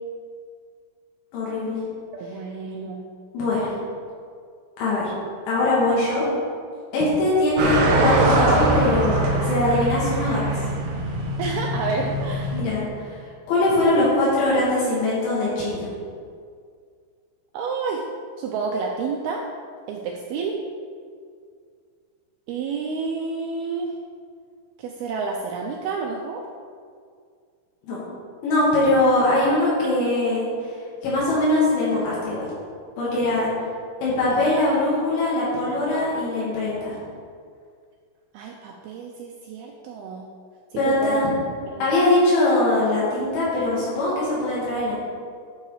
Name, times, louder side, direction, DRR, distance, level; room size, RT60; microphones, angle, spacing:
voice 1, 1.3-1.8 3.3-3.7 4.8-5.1 5.5-6.3 6.9-10.6 12.5-13.2 13.5-15.9 27.9-28.0 28.4-30.5 31.0-32.5 33.0-33.5 34.0-37.0 40.7-41.3 41.8-44.9, left 2 dB, 80° left, -7 dB, 4.7 m, -21 dB
voice 2, 2.1-3.1 11.4-12.6 17.5-18.0 18.4-19.4 19.9-20.6 22.5-24.0 24.8-26.4 34.3-34.5 38.3-40.3 40.7-41.2 41.7-41.9, right 4 dB, 85° right, 0 dB, 2.2 m, -30 dB
sound 1, 7.6-12.6, right 2 dB, 65° right, 3.2 m, -22 dB
12.0 x 6.6 x 5.0 m, 2.1 s
omnidirectional pair, 5.4 m